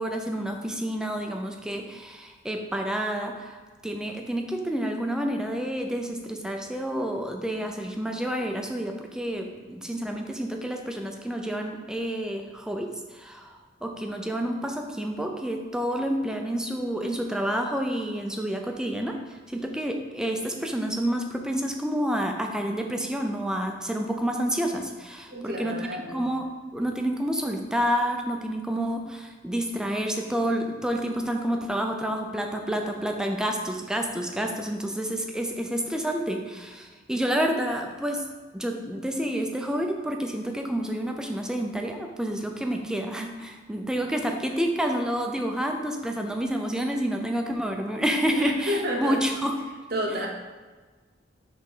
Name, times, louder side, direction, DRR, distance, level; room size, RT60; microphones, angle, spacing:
voice 1, 0.0-13.6 13.8-19.2 19.5-25.8 26.1-38.2 38.5-49.5, equal, 5° right, 3 dB, 0.5 m, -29 dB
voice 2, 25.3-26.3 48.3-49.2 49.9-50.3, equal, 55° right, 1 dB, 1.0 m, -30 dB
5.3 x 3.6 x 5.6 m, 1.4 s
head